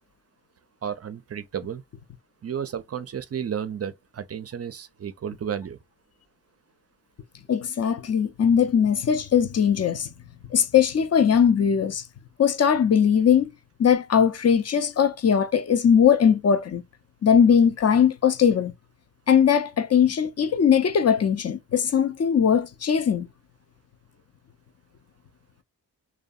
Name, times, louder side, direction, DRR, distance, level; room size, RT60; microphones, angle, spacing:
voice 1, 0.8-1.8 2.4-5.8, right 8 dB, 35° right, 0.5 m, -32 dB
voice 2, 7.5-10.1 10.5-12.0 12.4-13.5 13.8-16.8 17.2-18.7 19.3-23.3, left 7 dB, 40° left, 0.5 m, -20 dB
2.6 x 2.2 x 2.3 m
cardioid pair, 50°, 41 cm